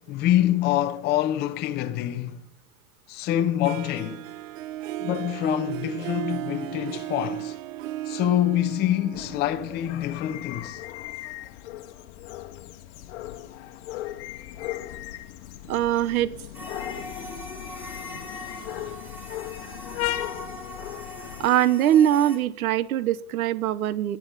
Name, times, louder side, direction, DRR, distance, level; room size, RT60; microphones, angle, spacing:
voice 1, 0.0-2.4 3.1-4.2 5.0-7.6 8.1-10.8, left 12 dB, 25° left, 0.7 m, -25 dB
Harp, 3.6-10.5, right 14 dB, 65° right, 0.6 m, -35 dB
sound 1, 9.1-21.5, left 14 dB, 55° left, 1.1 m, -37 dB
voice 2, 15.7-16.3 21.4-24.2, right 11 dB, 80° right, 1.0 m, -22 dB
sound 2, 16.5-22.4, left 1 dB, 5° right, 2.7 m, -40 dB
9.8 x 9.7 x 7.3 m
supercardioid pair, 145°, 42 cm